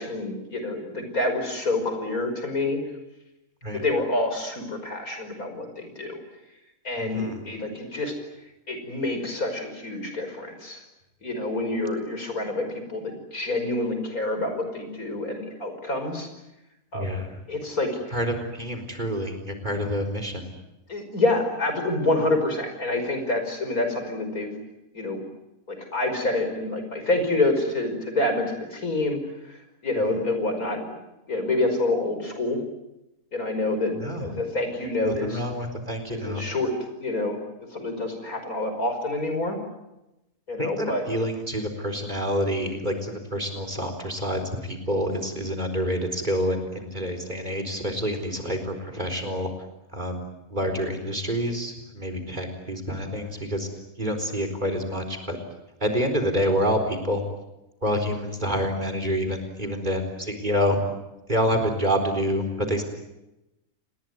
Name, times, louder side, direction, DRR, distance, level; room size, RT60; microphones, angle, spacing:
voice 1, 0.0-2.8 3.7-6.2 6.8-8.1 8.7-10.8 11.2-16.3 16.9-17.2 17.5-17.9 20.9-24.5 24.9-25.2 25.7-29.2 29.5-29.6 29.8-30.9 31.3-32.6 33.3-35.4 36.1-36.7 37.0-37.4 37.7-39.6 40.5-41.0, left 2 dB, 70° left, 6 dB, 5.8 m, -27 dB
voice 2, 7.0-7.4 16.9-17.3 18.1-20.5 34.0-34.2 35.0-36.4 40.6-49.5 49.9-50.2 50.5-53.7 54.0-55.4 55.8-57.2 57.8-60.8 61.3-62.8, equal, 30° right, 5 dB, 4.4 m, -27 dB
29.0 x 21.0 x 9.5 m, 0.94 s
omnidirectional pair, 1.6 m